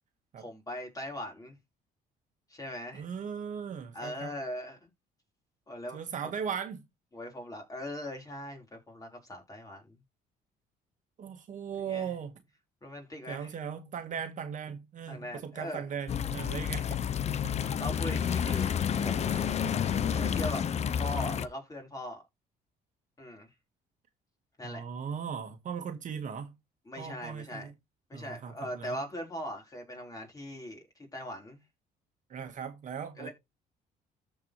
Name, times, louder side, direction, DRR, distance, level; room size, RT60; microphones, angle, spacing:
voice 1, 0.4-1.6 2.5-3.0 3.9-4.9 5.7-6.3 7.1-10.0 11.8-12.1 12.8-13.6 15.1-15.8 17.8-18.7 19.0-19.4 20.2-20.6 20.9-22.2 23.2-23.5 24.6-24.8 26.9-27.7 28.1-31.6 33.2-33.3, left 1 dB, 20° left, 4.1 m, -40 dB
voice 2, 2.9-4.3 5.9-6.8 11.2-12.4 13.3-17.0 17.4-17.6 18.4-20.5 24.6-26.6 27.0-27.7 28.1-29.0 32.3-33.3, right 7 dB, 50° right, 1.6 m, -39 dB
sound 1, 16.1-21.5, left 8 dB, 40° left, 0.7 m, -30 dB
14.0 x 4.7 x 3.1 m
cardioid pair, 110°, 17 cm